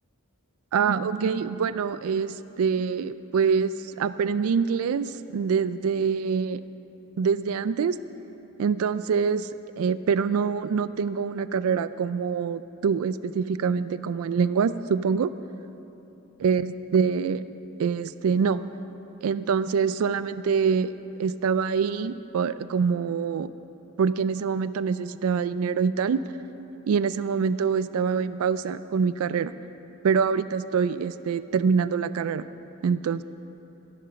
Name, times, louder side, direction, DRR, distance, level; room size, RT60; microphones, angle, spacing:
voice 1, 0.7-6.6 7.2-8.0 8.6-9.5 9.8-15.3 16.4-17.4 17.8-18.6 19.2-20.9 21.2-23.5 24.0-26.2 26.9-29.5 30.0-32.5 32.8-33.2, right 6 dB, 80° right, 14 dB, 0.4 m, -25 dB
14.5 x 11.0 x 5.7 m, 3.0 s
head